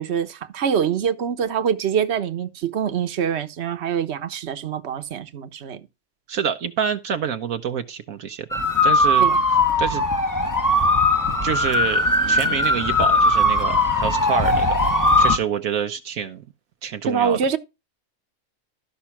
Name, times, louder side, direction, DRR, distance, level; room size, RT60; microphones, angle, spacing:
voice 1, 0.0-5.9 9.2-9.4 17.1-17.6, right 7 dB, 50° right, 1.3 m, -24 dB
voice 2, 6.3-8.5 8.8-9.3 9.8-10.0 11.4-14.8 15.2-16.4 16.8-17.4, right 8 dB, 75° right, 1.2 m, -27 dB
sound 1, 8.5-15.4, left 1 dB, 15° left, 1.1 m, -19 dB
13.0 x 5.6 x 5.8 m
omnidirectional pair, 1.5 m